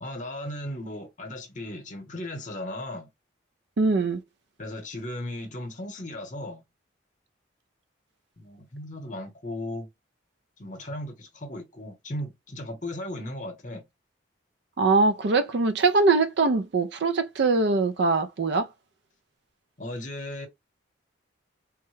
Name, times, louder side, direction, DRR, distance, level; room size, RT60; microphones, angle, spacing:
voice 1, 0.0-3.1 4.6-6.6 8.4-9.9 10.6-13.9 19.8-20.5, left 1 dB, 40° left, 0.9 m, -36 dB
voice 2, 3.8-4.2 14.8-18.7, right 3 dB, 60° right, 0.4 m, -22 dB
3.5 x 2.1 x 3.2 m
head